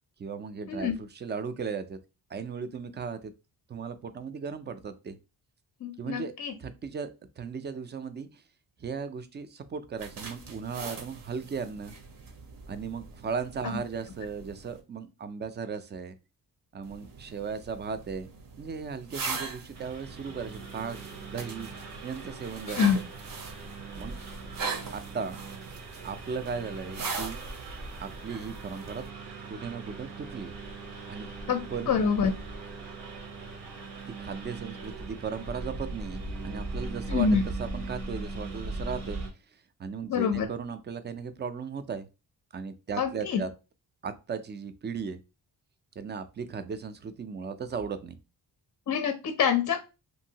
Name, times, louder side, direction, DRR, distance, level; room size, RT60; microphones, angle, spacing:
voice 1, 0.2-2.0 2.3-3.3 3.7-5.2 6.0-6.3 6.6-8.4 8.8-11.9 12.7-16.2 16.7-18.3 18.6-21.0 21.3-21.7 22.0-23.0 24.0-24.2 24.9-25.4 26.0-27.4 28.0-29.0 29.5-30.5 31.1-31.3 31.7-32.0 34.2-39.2 39.8-42.1 42.5-43.5 44.0-45.2 46.0-48.2, right 5 dB, 25° right, 11 dB, 0.4 m, -36 dB
voice 2, 5.8-6.5 13.6-13.8 22.6-23.0 31.5-32.3 37.1-37.4 40.1-40.5 43.0-43.4 48.9-49.8, left 6 dB, 50° left, 6 dB, 0.5 m, -26 dB
sound 1, 10.0-14.8 16.8-29.1, right 4 dB, 55° right, 0.8 m, -41 dB
Engine, 19.7-39.3, right 3 dB, 80° right, 1.1 m, -40 dB
2.7 x 2.6 x 2.8 m, 0.29 s
cardioid pair, 85°, 41 cm